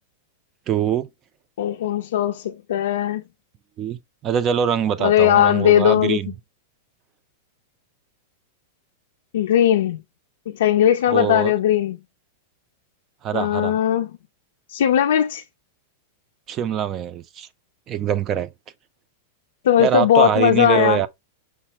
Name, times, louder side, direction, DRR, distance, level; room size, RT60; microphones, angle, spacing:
voice 1, 0.7-1.1 3.8-6.3 11.1-11.5 13.2-13.7 16.5-17.5 17.9-18.5 19.8-21.1, right 9 dB, 25° right, 0.4 m, -23 dB
voice 2, 1.6-3.2 5.0-6.2 9.3-10.0 10.5-12.0 13.3-14.2 14.7-15.4 19.6-21.0, left 11 dB, 80° left, 0.5 m, -18 dB
5.7 x 2.0 x 4.3 m
supercardioid pair, 165°, 0 cm